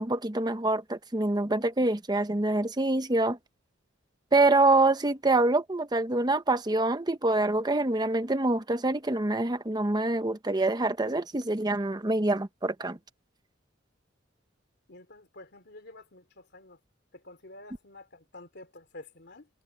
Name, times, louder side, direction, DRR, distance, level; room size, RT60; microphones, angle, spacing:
voice 1, 0.0-3.4 4.3-13.0, right 2 dB, 20° right, 0.9 m, -25 dB
voice 2, 14.9-16.8 17.1-19.5, left 2 dB, 60° left, 3.0 m, -49 dB
head